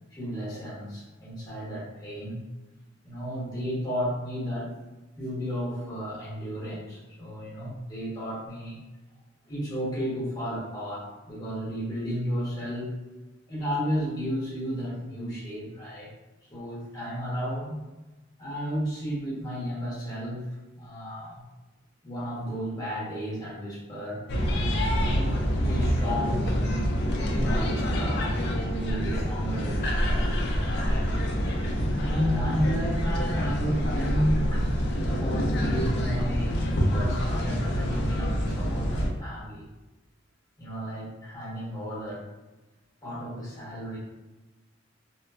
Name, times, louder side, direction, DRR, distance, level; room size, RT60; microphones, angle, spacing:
voice 1, 0.1-2.4 3.0-4.7 5.2-8.8 9.5-12.9 13.5-16.1 16.5-17.8 18.4-20.4 20.8-21.4 22.0-24.2 24.9-30.4 30.7-31.1 32.0-39.7 40.6-42.3 43.0-44.0, equal, 20° left, -8 dB, 1.0 m, -33 dB
sound 1, 24.3-39.1, equal, 55° left, 0.4 m, -26 dB
3.0 x 2.1 x 2.3 m, 1.1 s
head